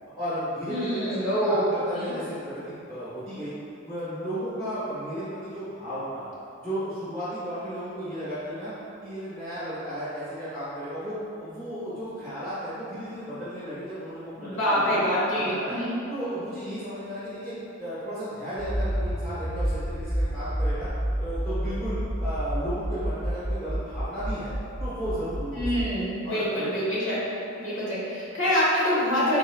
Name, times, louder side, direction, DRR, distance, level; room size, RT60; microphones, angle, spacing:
voice 1, 0.1-3.5 3.8-6.2 6.6-8.7 9.0-14.5 14.9-15.8 16.1-20.9 21.2-24.5 24.8-26.8, equal, 5° left, -13 dB, 1.0 m, -34 dB
voice 2, 0.7-2.1 14.4-16.0 25.5-27.2 27.5-29.4, equal, 80° left, -8 dB, 1.3 m, -26 dB
Accelerating revving vroom, 18.6-25.9, equal, 15° right, 0.7 m, -29 dB
3.9 x 3.8 x 2.3 m, 2.7 s
head